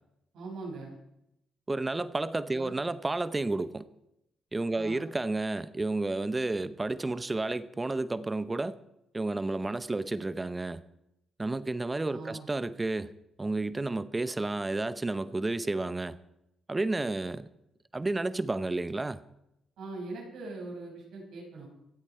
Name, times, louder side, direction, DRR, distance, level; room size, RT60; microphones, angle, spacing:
voice 1, 0.3-1.0 2.5-2.7 4.7-5.0 12.1-12.5 19.8-21.7, right 3 dB, 80° right, 5.6 m, -41 dB
voice 2, 1.7-3.9 4.5-8.7 9.1-10.8 11.4-13.1 13.4-16.2 16.7-17.5 17.9-19.2, right 2 dB, 20° right, 0.8 m, -31 dB
25.0 x 8.4 x 4.5 m
cardioid pair, 90°, 0 cm